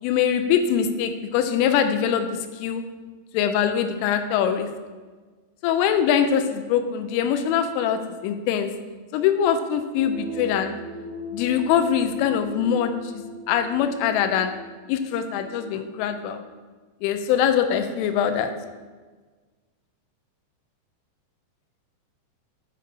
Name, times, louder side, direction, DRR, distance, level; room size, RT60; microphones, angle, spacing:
voice 1, 0.0-2.3 2.6-2.8 3.3-4.7 5.6-8.7 9.1-10.8 11.3-14.5 14.9-16.4 17.0-18.5, left 8 dB, 85° left, 8 dB, 3.2 m, -23 dB
sound 1, 10.0-16.5, left 2 dB, 60° right, 1.6 m, -39 dB
9.5 x 6.1 x 4.7 m, 1.4 s
omnidirectional pair, 5.6 m